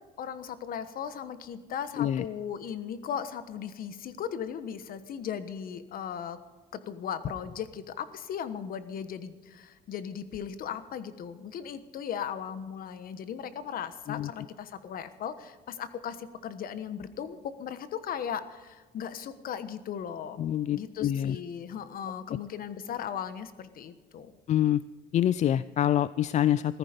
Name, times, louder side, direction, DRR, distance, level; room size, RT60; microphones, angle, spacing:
voice 1, 0.2-6.4 6.7-20.4 20.7-24.3, left 8 dB, 60° left, 12 dB, 1.3 m, -37 dB
voice 2, 2.0-2.3 14.1-14.3 20.4-21.4 24.5-24.8 25.1-26.8, left 11 dB, 45° left, 17 dB, 0.4 m, -26 dB
16.0 x 14.0 x 5.2 m, 1.3 s
cardioid pair, 110°, 17 cm